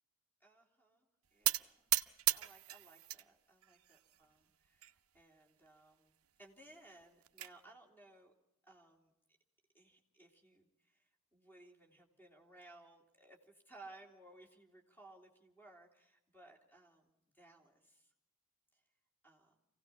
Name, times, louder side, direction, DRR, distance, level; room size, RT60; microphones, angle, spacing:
voice 1, 0.4-1.9 2.3-8.3 8.7-9.1 9.7-18.1 18.7-18.8 19.2-19.6, right 2 dB, 10° left, 1 dB, 3.3 m, -61 dB
sound 1, 1.4-3.2 3.6-4.2 4.8-4.9 5.2-5.3 5.7-5.8 6.9-7.5, right 16 dB, 85° right, 0.7 m, -36 dB
26.0 x 17.0 x 5.8 m, 0.85 s
head